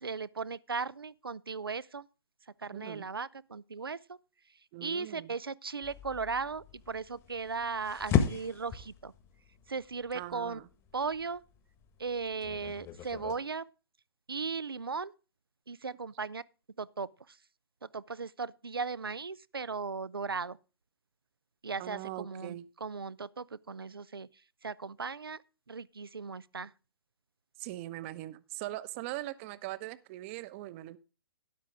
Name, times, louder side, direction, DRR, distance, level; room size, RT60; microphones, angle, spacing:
voice 1, 0.0-2.0 2.6-4.2 4.8-9.1 9.7-10.6 10.9-11.4 12.0-13.7 14.3-15.1 15.7-16.4 16.8-17.1 17.9-20.6 21.6-24.3 24.6-25.4 25.7-26.7, right 5 dB, 75° right, 0.7 m, -37 dB
voice 2, 2.7-3.1 4.7-5.3 10.1-10.7 21.8-22.7 27.6-31.0, right 16 dB, 30° right, 1.0 m, -41 dB
sound 1, 5.8-13.4, left 8 dB, 20° left, 1.5 m, -36 dB
13.0 x 11.0 x 3.6 m
figure-of-eight pair, 120°, 12 cm